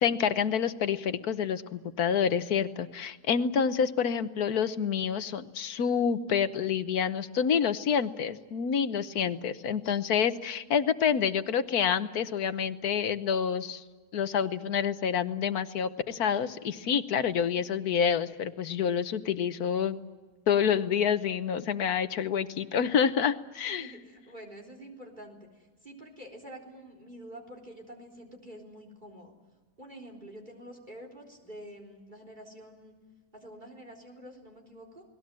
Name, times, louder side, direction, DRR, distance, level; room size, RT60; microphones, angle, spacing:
voice 1, 0.0-13.8 14.1-20.0 20.5-23.9, left 7 dB, 75° left, 12 dB, 1.5 m, -28 dB
voice 2, 17.3-17.6 23.8-29.3 29.8-32.9 33.3-35.0, right 1 dB, 30° right, 2 dB, 4.1 m, -47 dB
29.5 x 20.0 x 7.6 m, 1.3 s
omnidirectional pair, 1.6 m